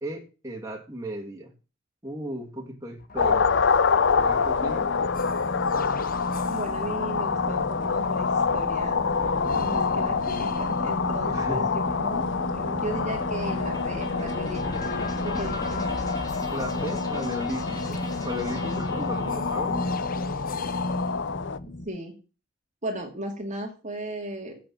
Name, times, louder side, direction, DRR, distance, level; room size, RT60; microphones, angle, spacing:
voice 1, 0.0-1.5 2.0-3.5 4.1-4.9 11.3-11.6 16.5-19.8, equal, 15° right, -2 dB, 2.8 m, -35 dB
sound 1, 3.0-21.9, left 1 dB, 45° left, 1.2 m, -34 dB
sound 2, 3.2-21.6, left 5 dB, 65° left, 0.7 m, -27 dB
voice 2, 6.5-9.0 9.5-15.9 21.8-22.1 22.8-24.6, right 1 dB, 40° right, 1 dB, 2.5 m, -36 dB
sound 3, 8.7-21.4, left 1 dB, 20° left, 2.7 m, -40 dB
8.5 x 6.9 x 7.5 m, 0.33 s
head